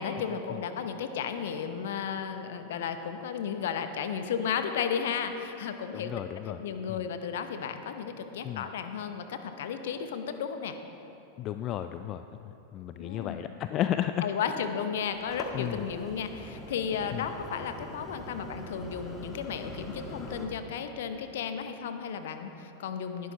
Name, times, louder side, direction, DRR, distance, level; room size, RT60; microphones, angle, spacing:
voice 1, 0.0-6.1 6.5-10.8 13.0-13.4 14.2-23.3, left 7 dB, 55° left, 9 dB, 0.8 m, -34 dB
voice 2, 5.9-6.6 6.9-7.0 8.4-8.6 11.4-14.3 15.5-15.8 17.1-17.3, left 11 dB, 35° left, 10 dB, 0.3 m, -33 dB
sound 1, 15.1-20.5, left 1 dB, 20° left, 1.5 m, -43 dB
19.0 x 11.5 x 2.9 m, 2.9 s
figure-of-eight pair, 90°, 0 cm